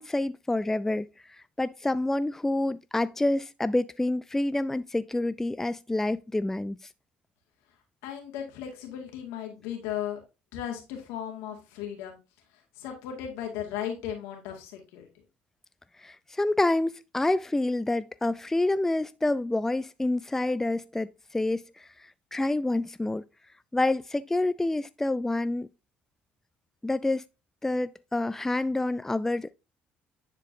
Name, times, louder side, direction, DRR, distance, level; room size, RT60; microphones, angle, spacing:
voice 1, 0.0-6.8 16.0-21.9 22.3-23.2 23.7-25.7 26.8-27.3 27.6-29.5, left 2 dB, 10° left, 0.3 m, -28 dB
voice 2, 8.0-10.2 10.5-12.2 12.5-15.1, left 10 dB, 80° left, 2.0 m, -36 dB
10.0 x 4.5 x 2.7 m
hypercardioid pair, 70°, 4 cm